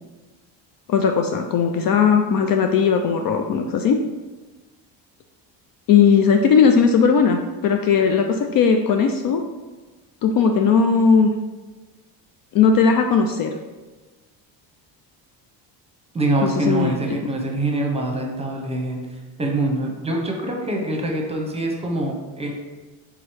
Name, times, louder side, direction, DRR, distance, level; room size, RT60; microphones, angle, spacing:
voice 1, 0.9-4.0 5.9-9.4 10.2-11.3 12.5-13.5 16.4-17.0, left 6 dB, 50° left, 5 dB, 0.4 m, -17 dB
voice 2, 16.1-22.5, right 2 dB, 15° right, 0 dB, 0.9 m, -24 dB
3.6 x 3.1 x 4.6 m, 1.2 s
supercardioid pair, 85°, 45 cm